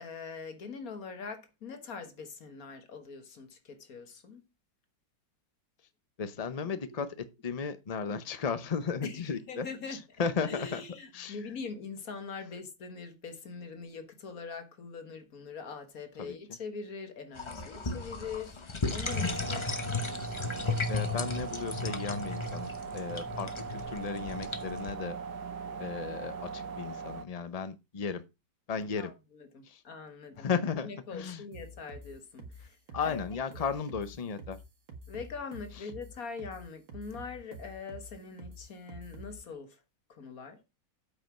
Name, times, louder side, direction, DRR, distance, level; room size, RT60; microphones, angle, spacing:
voice 1, 0.0-4.4 6.7-6.9 9.0-10.0 10.4-19.7 29.0-29.1 29.5-30.5 30.8-32.8 33.0-33.2 35.1-39.8 40.1-40.6, left 5 dB, 50° left, 1.6 m, -43 dB
voice 2, 6.2-10.8 11.1-11.6 16.2-16.4 20.9-25.2 25.8-28.2 28.7-29.1 29.6-29.8 30.4-31.4 32.9-34.6 35.7-35.9, left 6 dB, 85° left, 0.3 m, -35 dB
sound 1, 17.4-24.9, left 3 dB, 30° left, 0.5 m, -35 dB
sound 2, 19.0-27.2, right 5 dB, 65° right, 1.5 m, -40 dB
sound 3, 31.5-39.4, right 1 dB, 90° right, 2.6 m, -48 dB
8.4 x 5.3 x 6.0 m
omnidirectional pair, 2.0 m